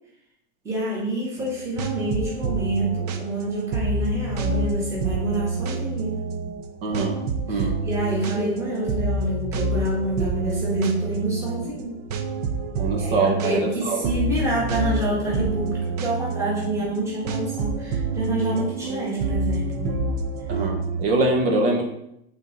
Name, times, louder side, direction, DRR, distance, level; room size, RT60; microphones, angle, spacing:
voice 1, 0.6-6.3 7.5-11.9 13.0-20.0, right 1 dB, 10° right, -6 dB, 1.5 m, -27 dB
sound 1, 1.4-21.1, right 3 dB, 35° right, 0.5 m, -28 dB
voice 2, 6.8-7.2 7.5-7.8 12.8-13.6 13.8-14.1 20.5-21.8, right 3 dB, 55° right, 1 dB, 1.4 m, -23 dB
8.1 x 3.9 x 3.9 m, 0.80 s
supercardioid pair, 175°, 35 cm